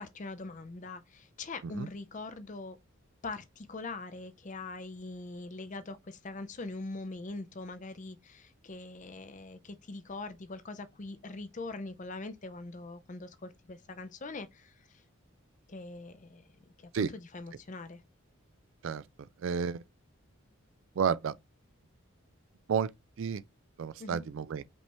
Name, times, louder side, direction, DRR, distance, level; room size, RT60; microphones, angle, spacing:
voice 1, 0.0-2.8 3.2-14.7 15.7-16.4 16.8-18.0 24.0-24.2, left 3 dB, 35° left, 0.5 m, -42 dB
voice 2, 19.4-19.8 21.0-21.3 22.7-22.9 23.2-23.4 23.8-24.6, right 6 dB, 65° right, 0.4 m, -31 dB
5.2 x 3.4 x 2.9 m
head